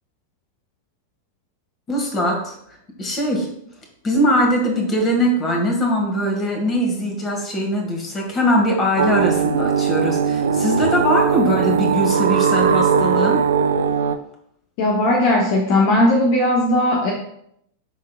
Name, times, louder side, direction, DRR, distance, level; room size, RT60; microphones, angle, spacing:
voice 1, 1.9-2.6 3.0-3.5 4.0-13.4, equal, 25° left, 1 dB, 1.8 m, -21 dB
sound 1, 9.0-14.2, right 7 dB, 65° right, 0.4 m, -19 dB
voice 2, 14.8-17.1, left 1 dB, 45° left, 0 dB, 0.9 m, -17 dB
11.0 x 3.7 x 2.4 m, 0.71 s
figure-of-eight pair, 90°, 0 cm